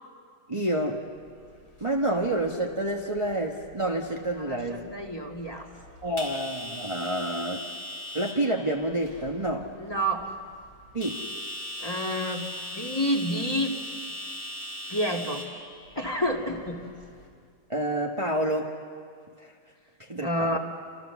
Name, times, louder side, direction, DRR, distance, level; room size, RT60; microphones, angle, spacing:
voice 1, 0.5-1.0 1.8-4.8 6.0-7.7 8.1-9.7 10.9-11.2 17.7-18.7 19.4-19.5 20.0-20.6, right 1 dB, 20° right, 0 dB, 1.4 m, -28 dB
sound 1, 1.1-17.3, left 1 dB, 60° left, 5.3 m, -41 dB
voice 2, 4.4-5.7 9.8-10.3 11.8-12.4 12.7-13.8 14.9-15.4 15.9-16.8 20.2-20.6, equal, 15° left, 1 dB, 2.5 m, -29 dB
30.0 x 27.5 x 7.2 m, 2.1 s
omnidirectional pair, 1.8 m